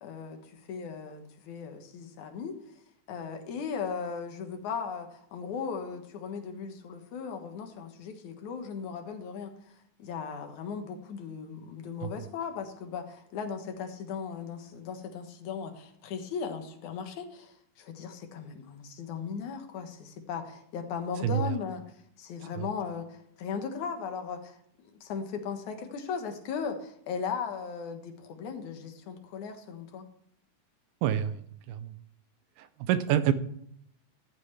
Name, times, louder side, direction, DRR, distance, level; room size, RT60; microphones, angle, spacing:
voice 1, 0.0-2.6 3.1-9.5 10.0-21.8 22.2-24.5 25.0-30.1, left 6 dB, 65° left, 6 dB, 2.7 m, -37 dB
voice 2, 31.0-31.4 31.7-31.9 32.9-33.3, right 10 dB, 80° right, 12 dB, 2.2 m, -26 dB
14.5 x 14.0 x 3.3 m, 0.69 s
omnidirectional pair, 3.9 m